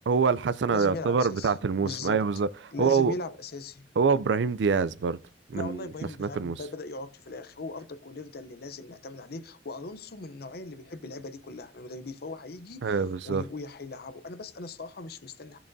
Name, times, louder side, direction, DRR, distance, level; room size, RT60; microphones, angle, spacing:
voice 1, 0.1-2.5 2.8-3.1 4.0-5.2 5.5-5.9 6.2-6.5 12.8-13.4, right 5 dB, 75° right, 0.4 m, -25 dB
voice 2, 0.7-2.2 2.7-3.9 5.5-15.6, left 3 dB, 60° left, 0.7 m, -39 dB
14.5 x 7.0 x 2.7 m
head